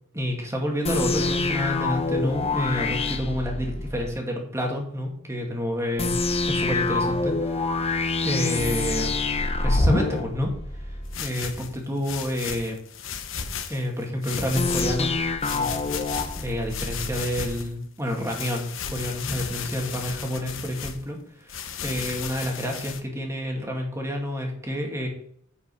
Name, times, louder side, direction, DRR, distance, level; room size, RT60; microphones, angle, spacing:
voice 1, 0.1-6.2 6.4-9.1 9.6-10.5 10.8-12.8 13.7-15.1 15.5-15.7 16.4-25.1, equal, 15° right, 1 dB, 2.3 m, -29 dB
sound 1, 0.8-4.1 6.0-11.2 14.5-17.2, left 3 dB, 30° left, 0.8 m, -26 dB
sound 2, 11.1-13.8 14.2-15.1 15.4-17.7 18.1-21.0 21.5-23.0, left 7 dB, 70° left, 1.0 m, -35 dB
9.9 x 5.5 x 5.6 m, 0.67 s
head